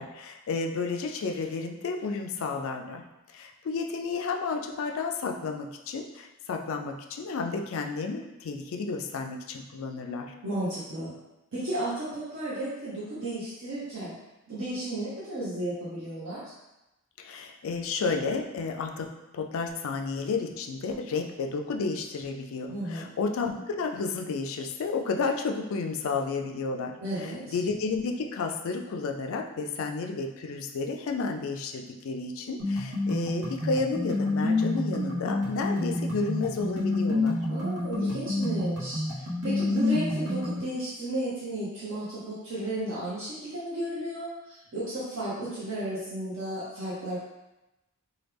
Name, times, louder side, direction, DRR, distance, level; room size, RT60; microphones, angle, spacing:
voice 1, 0.0-3.0 3.3-10.3 17.2-19.1 19.3-37.4, left 4 dB, 60° left, 3 dB, 0.3 m, -32 dB
voice 2, 10.4-11.1 11.5-14.1 14.5-16.4 22.7-23.1 27.0-27.6 37.5-47.2, right 1 dB, 60° right, -9 dB, 0.8 m, -33 dB
sound 1, 32.6-40.6, left 2 dB, 85° right, 1.0 m, -28 dB
3.1 x 2.2 x 3.3 m, 0.96 s
head